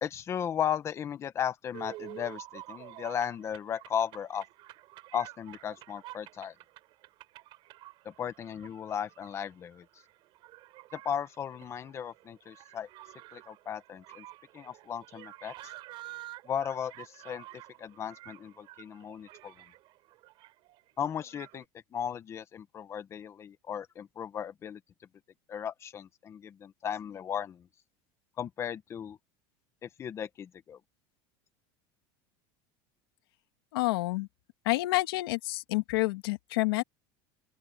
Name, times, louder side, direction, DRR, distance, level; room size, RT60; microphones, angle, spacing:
voice 1, 0.0-4.4 5.1-6.5 8.0-9.8 10.9-12.9 13.3-14.2 14.5-15.5 16.4-17.4 17.8-19.5 21.0-21.6 21.9-24.8 25.5-27.7 28.4-29.2 29.8-30.8, left 8 dB, 20° left, 1.2 m, -36 dB
sound 1, 1.7-21.7, right 17 dB, 45° right, 4.1 m, -50 dB
voice 2, 33.7-34.3 34.7-36.8, left 21 dB, 85° left, 2.3 m, -28 dB
open air
cardioid pair, 165°, 12 cm